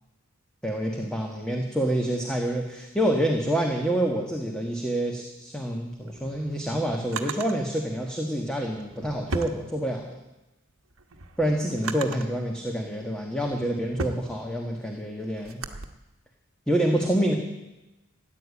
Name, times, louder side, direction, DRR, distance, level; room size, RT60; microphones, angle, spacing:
voice 1, 0.6-10.1 11.4-15.6 16.7-17.3, right 1 dB, 5° left, 1 dB, 1.4 m, -27 dB
Drawer open or close, 5.9-7.6 8.6-10.2 10.7-12.4 13.0-15.9, right 3 dB, 75° right, 1.2 m, -37 dB
15.0 x 10.0 x 8.4 m, 0.99 s
head